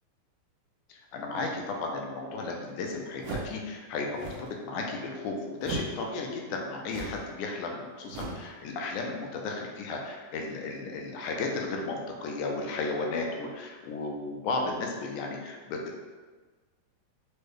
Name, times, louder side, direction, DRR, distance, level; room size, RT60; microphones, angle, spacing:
voice 1, 0.9-16.0, left 3 dB, 85° left, 1 dB, 2.1 m, -34 dB
sound 1, 3.2-3.6 4.1-4.5 5.6-6.0 6.8-7.3 8.1-8.5, right 2 dB, 90° right, 1.3 m, -37 dB
6.3 x 2.2 x 3.2 m, 1.4 s
omnidirectional pair, 3.6 m